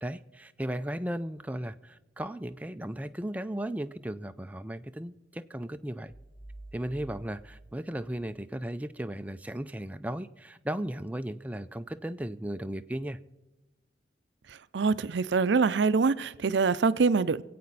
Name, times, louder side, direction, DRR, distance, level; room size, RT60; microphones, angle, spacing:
voice 1, 0.0-6.1 6.7-13.2, right 1 dB, 10° right, 0.4 m, -36 dB
sound 1, 6.1-8.9, right 1 dB, 80° left, 3.1 m, -50 dB
voice 2, 14.7-17.4, right 4 dB, 80° right, 0.5 m, -24 dB
25.0 x 8.5 x 4.0 m
head